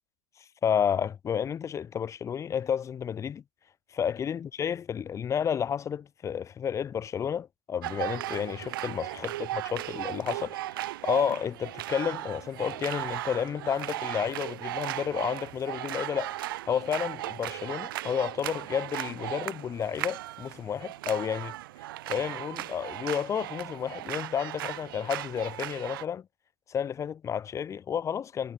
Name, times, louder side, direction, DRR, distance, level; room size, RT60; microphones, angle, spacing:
voice 1, 0.6-3.4 3.9-10.6 11.0-21.5 22.1-26.3 26.7-28.5, left 8 dB, 20° left, 2.7 m, -31 dB
sound 1, 7.8-26.0, right 15 dB, 55° right, 1.1 m, -36 dB
figure-of-eight pair, 95°, 14 cm